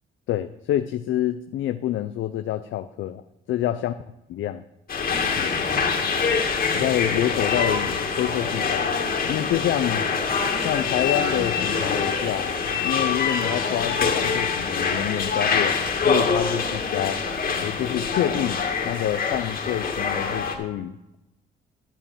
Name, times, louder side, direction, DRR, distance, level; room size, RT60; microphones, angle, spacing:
voice 1, 0.3-3.2 3.5-3.9 4.3-4.6 5.4-5.6 6.7-8.9 9.2-10.1 10.6-12.5 12.8-17.2 17.6-18.6 18.8-21.2, left 12 dB, 75° left, 9 dB, 0.6 m, -27 dB
sound 1, 4.9-20.5, left 5 dB, 50° left, 2.1 m, -25 dB
11.5 x 6.6 x 7.2 m, 0.92 s
cardioid pair, 90°, 20 cm